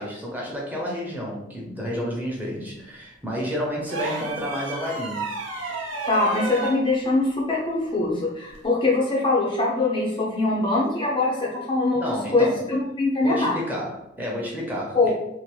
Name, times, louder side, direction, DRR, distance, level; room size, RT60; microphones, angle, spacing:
voice 1, 0.0-5.3 11.9-12.7 13.2-15.1, equal, 10° right, -3 dB, 0.8 m, -30 dB
sound 1, 3.9-6.8 8.5-8.7, right 3 dB, 85° right, 0.7 m, -31 dB
voice 2, 6.0-13.5 14.9-15.1, left 2 dB, 25° left, -4 dB, 0.5 m, -23 dB
2.8 x 2.5 x 3.1 m, 0.83 s
head